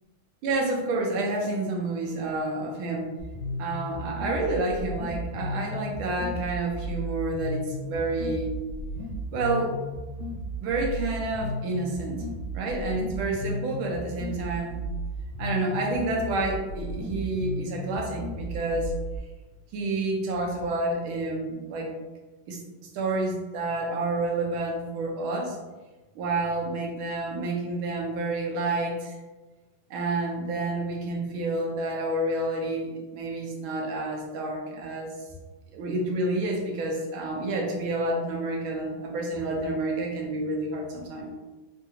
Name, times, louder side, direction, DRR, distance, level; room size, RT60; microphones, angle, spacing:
voice 1, 0.4-3.1 3.6-8.5 9.3-9.7 10.6-12.2 12.5-14.8 15.4-18.9 19.7-21.9 22.5-25.6 26.1-29.2 29.9-35.1 35.7-41.3, right 2 dB, 85° right, 1 dB, 1.5 m, -29 dB
sound 1, 3.2-19.2, equal, 45° left, 0.9 m, -34 dB
3.7 x 2.7 x 2.4 m, 1.2 s
omnidirectional pair, 2.2 m